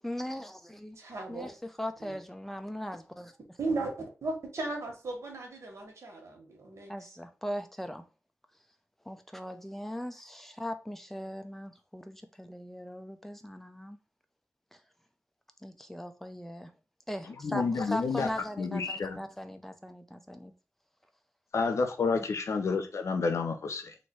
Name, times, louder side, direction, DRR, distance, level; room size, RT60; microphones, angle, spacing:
voice 1, 0.0-1.0 1.3-3.3 6.9-8.0 9.0-14.0 14.7-14.8 15.6-16.7 17.1-20.5 22.1-22.2, equal, 5° left, 0.6 m, -39 dB
voice 2, 0.9-1.5 2.0-2.2 3.6-7.2, right 3 dB, 75° right, 1.3 m, -36 dB
voice 3, 17.3-18.3 18.6-19.2 21.5-23.9, left 4 dB, 80° left, 0.6 m, -30 dB
3.0 x 2.7 x 4.3 m
cardioid pair, 60°, 5 cm